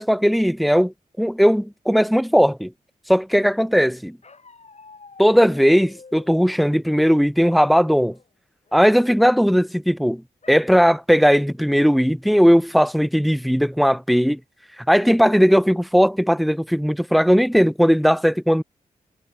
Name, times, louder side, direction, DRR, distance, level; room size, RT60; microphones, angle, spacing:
voice 1, 0.0-2.7 3.1-4.2 5.2-8.2 8.7-10.2 10.5-14.4 14.9-18.6, equal, ahead, 1.1 m, -17 dB
Bark, 4.2-6.3 7.0-7.7 8.1-8.3 8.7-9.0 10.4-10.7 11.2-11.3 11.7-12.1, left 4 dB, 50° left, 6.8 m, -48 dB
cardioid pair, 50°, 15 cm